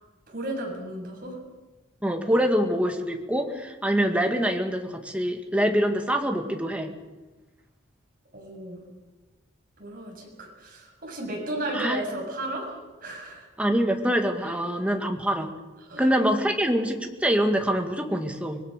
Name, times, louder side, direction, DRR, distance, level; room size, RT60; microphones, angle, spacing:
voice 1, 0.3-1.4 8.3-8.8 9.8-13.5 15.9-16.1, right 1 dB, 45° right, -1 dB, 7.3 m, -34 dB
voice 2, 2.0-6.9 11.7-12.0 13.6-15.5 16.0-18.6, equal, 5° right, 3 dB, 2.0 m, -25 dB
25.0 x 21.0 x 6.7 m, 1.2 s
head